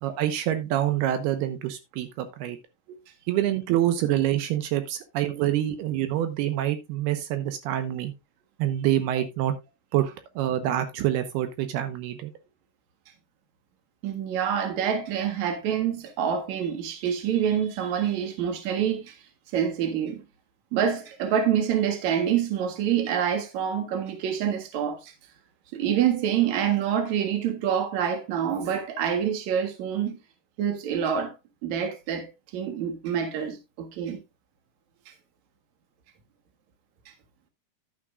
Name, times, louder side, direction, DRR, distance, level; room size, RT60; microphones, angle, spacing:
voice 1, 0.0-2.6 3.3-8.1 8.6-9.5 9.9-12.3, right 12 dB, 85° right, 2.9 m, -26 dB
voice 2, 14.0-19.1 19.5-20.2 20.7-25.1 25.7-30.2 30.6-31.3 31.6-34.2, right 8 dB, 55° right, 2.6 m, -26 dB
11.5 x 9.0 x 2.3 m
omnidirectional pair, 4.5 m